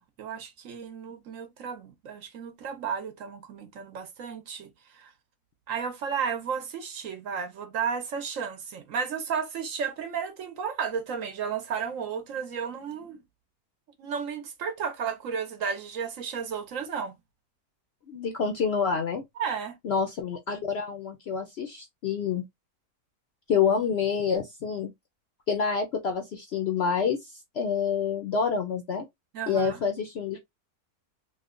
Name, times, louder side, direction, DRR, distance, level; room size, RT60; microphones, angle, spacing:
voice 1, 0.0-5.1 5.7-13.2 14.0-17.1 19.4-19.8 29.3-29.8, right 6 dB, 65° right, 1.0 m, -33 dB
voice 2, 18.1-19.2 19.8-22.4 23.5-24.9 25.5-29.0 29.5-30.4, left 6 dB, 65° left, 0.6 m, -27 dB
3.1 x 2.2 x 3.6 m
omnidirectional pair, 1.6 m